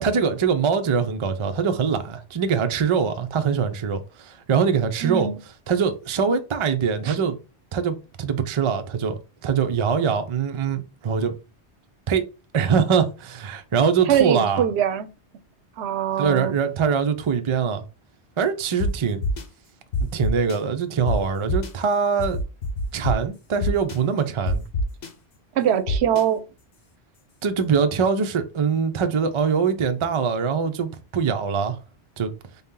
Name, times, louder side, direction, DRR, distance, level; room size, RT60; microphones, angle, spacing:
voice 1, 0.0-5.3 5.7-7.4 7.7-11.3 12.1-12.3 12.5-14.7 16.2-17.8 18.4-19.2 20.1-22.4 22.9-24.6 27.4-31.8 32.2-32.3, right 6 dB, 45° right, 0.4 m, -23 dB
voice 2, 5.0-5.4 7.0-7.2 14.1-15.1 15.8-16.5 25.6-26.4, right 9 dB, 75° right, 0.8 m, -22 dB
sound 1, 18.8-18.9 19.2-19.4 19.9-20.6 21.1-21.2 21.5-21.7 22.2-23.1 23.6-24.0 24.5-25.1 25.9-26.2, left 2 dB, 70° left, 1.0 m, -24 dB
3.9 x 2.8 x 3.6 m
omnidirectional pair, 1.1 m